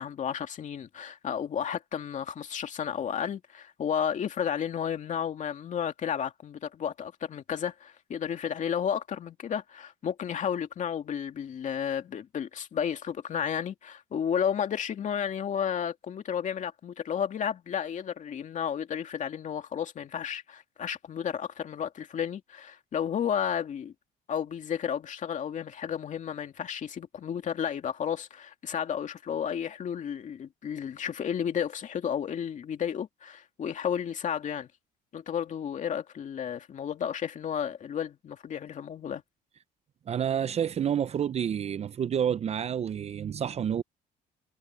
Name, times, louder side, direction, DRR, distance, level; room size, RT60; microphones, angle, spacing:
voice 1, 0.0-23.9 24.3-34.7 35.1-39.2, left 8 dB, 45° left, 2.3 m, -32 dB
voice 2, 40.1-43.8, right 8 dB, 40° right, 0.6 m, -29 dB
cardioid pair, 110°, 17 cm